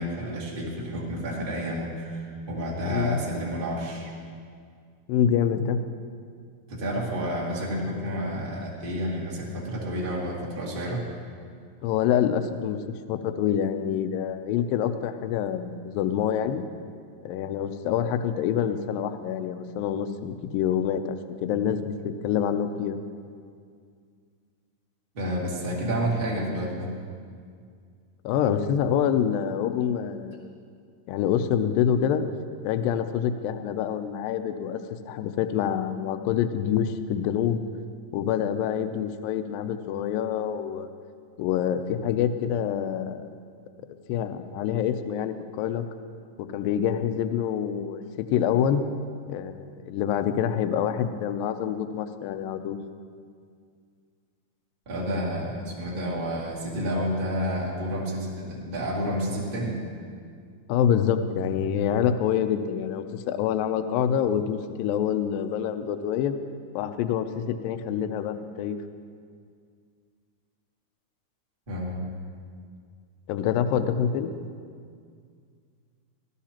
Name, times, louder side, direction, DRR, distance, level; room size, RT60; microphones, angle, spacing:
voice 1, 0.0-4.1 6.7-11.0 25.1-26.9 54.8-59.8 71.7-72.0, equal, 40° right, -5 dB, 0.7 m, -30 dB
voice 2, 2.8-3.2 5.1-5.8 11.8-12.8 13.1-16.6 17.2-21.2 21.4-23.0 28.2-30.4 31.1-32.2 32.6-34.8 35.1-37.6 38.1-40.9 41.4-43.3 44.1-45.9 46.5-48.8 49.3-52.8 60.7-66.4 66.8-68.8 73.3-74.3, left 9 dB, 80° left, 8 dB, 2.1 m, -26 dB
18.0 x 13.0 x 2.9 m, 2.2 s
omnidirectional pair, 4.6 m